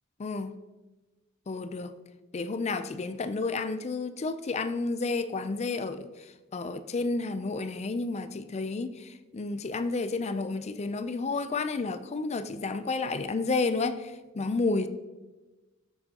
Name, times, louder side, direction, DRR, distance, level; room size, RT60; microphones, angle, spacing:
voice 1, 0.2-0.5 1.5-1.9 2.3-6.1 6.5-14.9, left 3 dB, 30° left, 11 dB, 0.4 m, -31 dB
13.5 x 7.1 x 2.8 m, 1.2 s
head